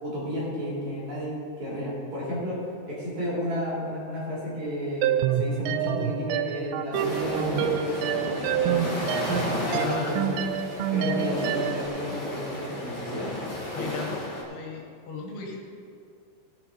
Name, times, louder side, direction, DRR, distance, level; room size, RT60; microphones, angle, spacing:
voice 1, 0.0-9.0 9.6-10.4 10.9-13.3, equal, 45° right, -7 dB, 3.9 m, -32 dB
sound 1, 5.0-11.9, right 9 dB, 85° right, 2.6 m, -28 dB
sound 2, 6.9-14.4, left 1 dB, 40° left, 1.8 m, -33 dB
voice 2, 9.5-10.2 13.7-14.2 14.5-15.6, left 5 dB, 75° left, 1 dB, 3.6 m, -36 dB
16.5 x 7.6 x 4.3 m, 2.3 s
omnidirectional pair, 5.5 m